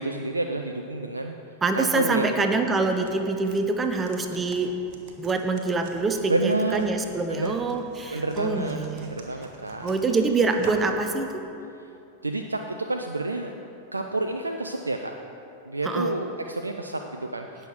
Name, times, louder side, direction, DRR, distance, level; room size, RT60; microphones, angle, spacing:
voice 1, 0.0-1.3 1.7-2.8 6.3-6.9 7.3-7.6 8.1-9.9 11.8-11.9 12.2-13.5 13.9-15.1 15.7-17.7, right 2 dB, 80° right, 4 dB, 0.5 m, -29 dB
voice 2, 1.6-4.7 5.2-9.1 9.8-11.4 15.8-16.1, right 3 dB, 15° right, 6 dB, 0.8 m, -25 dB
sound 1, 2.7-11.0, right 4 dB, 40° right, 1.5 m, -46 dB
17.0 x 6.3 x 4.7 m, 2.7 s
figure-of-eight pair, 90°, 0 cm